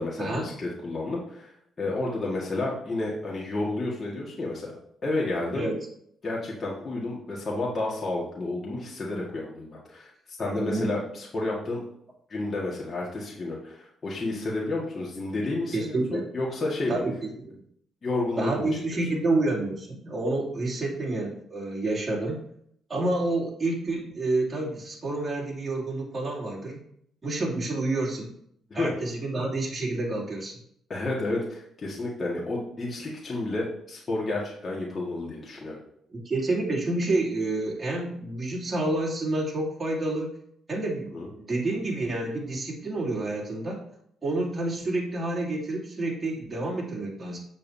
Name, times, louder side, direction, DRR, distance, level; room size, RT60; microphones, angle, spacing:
voice 1, 0.0-1.5 1.8-4.7 5.0-5.7 6.2-11.8 12.3-17.0 18.0-19.0 28.7-28.9 30.9-35.8 41.1-41.3, left 2 dB, 40° left, -4 dB, 1.8 m, -31 dB
voice 2, 10.5-10.9 15.7-16.2 16.9-17.5 18.3-22.4 22.9-26.8 27.2-28.3 28.7-30.6 36.1-40.3 40.7-43.8 44.2-47.4, right 2 dB, 25° right, -4 dB, 2.8 m, -29 dB
8.1 x 7.2 x 2.8 m, 0.70 s
cardioid pair, 90°, 0 cm